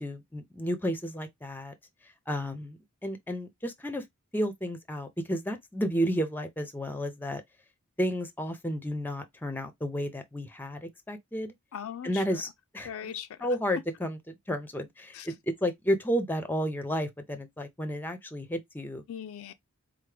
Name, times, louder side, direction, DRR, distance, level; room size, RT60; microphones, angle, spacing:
voice 1, 0.0-1.7 2.3-4.0 4.3-7.4 8.0-11.5 12.0-12.5 12.7-12.9 13.4-14.2 14.5-19.0, equal, 10° left, 0.6 m, -32 dB
voice 2, 11.7-12.4 12.8-13.5 15.1-15.3 19.1-19.5, left 9 dB, 70° left, 0.4 m, -40 dB
4.6 x 2.1 x 3.3 m
head